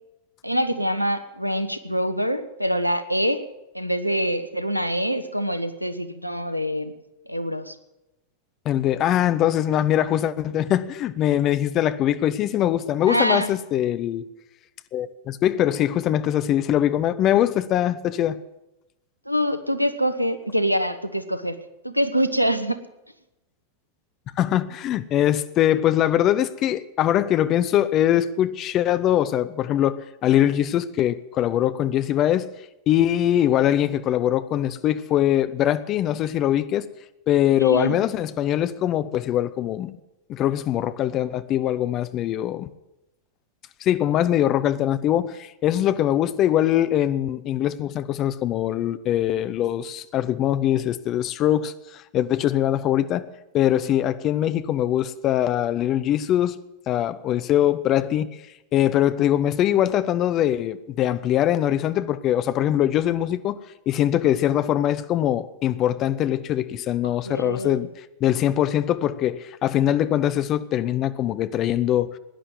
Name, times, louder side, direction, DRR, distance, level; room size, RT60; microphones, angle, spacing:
voice 1, 0.4-3.4 3.7-6.9 7.3-7.7 13.1-13.5 19.3-21.6 21.8-22.8 37.6-38.0 67.0-67.9, equal, 90° right, 0.9 m, -25 dB
voice 2, 8.6-14.3 14.9-18.4 24.4-32.5 32.9-36.9 37.3-40.0 40.3-42.7 43.8-56.6 56.9-58.3 58.7-63.6 63.9-67.9 68.2-72.2, left 11 dB, 35° left, 0.8 m, -22 dB
16.5 x 10.0 x 7.8 m
figure-of-eight pair, 90°, 0 cm